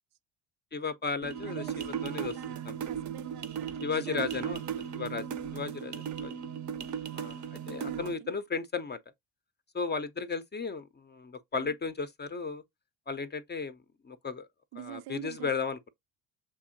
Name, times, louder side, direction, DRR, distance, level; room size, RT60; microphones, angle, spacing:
voice 1, 0.7-1.6 2.0-2.7 3.8-4.6 5.0-5.2 5.5-6.3 7.1-9.0 9.7-12.6 13.1-13.8 14.0-14.5 14.8-15.8, left 5 dB, 20° left, 0.5 m, -35 dB
sound 1, 1.2-8.2, right 8 dB, 35° right, 0.6 m, -37 dB
voice 2, 1.5-4.9 7.8-8.3 11.5-11.8 14.7-15.5, right 14 dB, 75° right, 0.6 m, -45 dB
6.8 x 2.7 x 2.6 m
hypercardioid pair, 55°, 49 cm